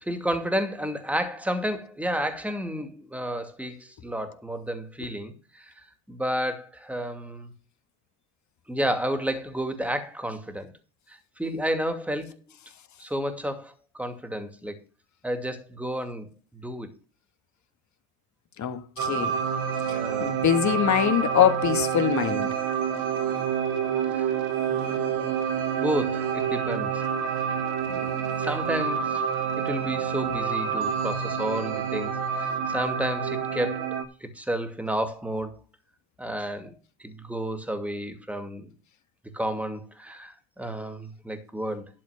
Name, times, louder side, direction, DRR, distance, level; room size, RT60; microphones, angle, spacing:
voice 1, 0.0-5.7 6.1-7.5 8.7-10.7 11.1-12.3 13.0-14.8 15.2-16.9 19.9-20.3 24.1-24.3 24.7-25.4 25.8-27.0 27.9-28.1 28.4-29.3 29.6-33.9 34.2-35.6 36.2-36.7 37.0-38.7 39.3-41.9, equal, 5° right, 2.4 m, -31 dB
voice 2, 18.6-19.3 20.2-22.5, left 9 dB, 45° left, 1.7 m, -23 dB
sound 1, 19.0-34.0, right 7 dB, 65° right, 2.1 m, -28 dB
12.0 x 4.5 x 6.5 m
supercardioid pair, 80°, 39 cm